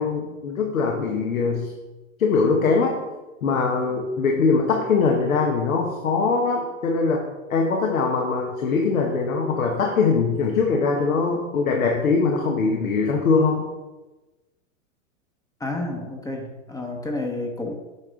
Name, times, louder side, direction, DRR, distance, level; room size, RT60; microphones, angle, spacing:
voice 1, 0.0-1.7 2.2-3.0 3.4-13.7, left 4 dB, 85° left, 1 dB, 1.2 m, -22 dB
voice 2, 15.6-17.7, left 2 dB, 10° left, 1 dB, 0.8 m, -30 dB
8.6 x 5.2 x 3.7 m, 1.1 s
hypercardioid pair, 110°, 40 cm